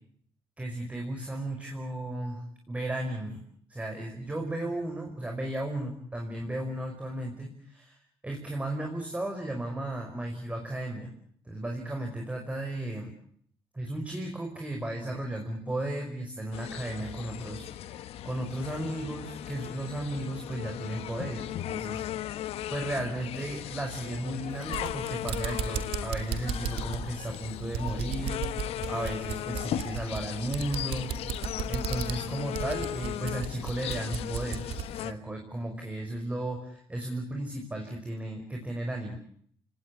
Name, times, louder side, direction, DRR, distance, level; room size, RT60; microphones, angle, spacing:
voice 1, 0.6-3.4 3.7-8.0 8.2-11.2 11.5-13.1 13.7-22.0 22.7-28.5 28.9-31.1 31.7-34.6 34.9-39.2, right 1 dB, 15° right, 2 dB, 5.3 m, -35 dB
sound 1, 16.5-35.1, left 12 dB, 80° left, 1.3 m, -37 dB
sound 2, 24.5-34.9, right 8 dB, 75° right, 2.8 m, -35 dB
28.0 x 19.0 x 8.3 m, 0.63 s
cardioid pair, 110°, 10 cm